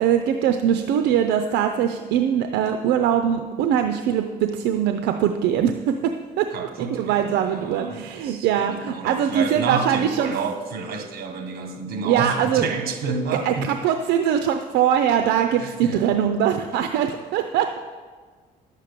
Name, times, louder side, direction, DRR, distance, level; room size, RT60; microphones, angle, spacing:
voice 1, 0.0-6.5 6.8-10.3 12.0-12.7 13.4-17.8, right 9 dB, 80° right, 7 dB, 0.6 m, -22 dB
voice 2, 6.5-13.7 15.6-16.1 17.1-17.2, right 4 dB, 65° right, 6 dB, 1.6 m, -30 dB
11.0 x 7.5 x 6.7 m, 1.5 s
cardioid pair, 110°, 17 cm